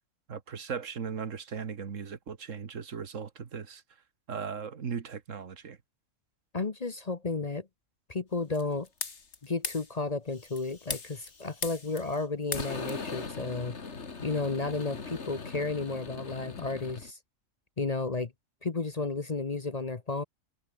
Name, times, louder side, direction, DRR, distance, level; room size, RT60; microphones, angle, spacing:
voice 1, 0.3-3.8 4.3-5.8, right 6 dB, 75° right, 1.8 m, -37 dB
voice 2, 6.5-7.7 8.1-8.9 9.4-13.8 14.2-17.2 17.8-18.3 18.6-20.2, left 3 dB, 30° left, 1.0 m, -32 dB
sound 1, 8.5-9.4 9.6-9.9 10.4-12.2 12.5-17.1, left 4 dB, 60° left, 2.3 m, -39 dB
omnidirectional pair, 1.4 m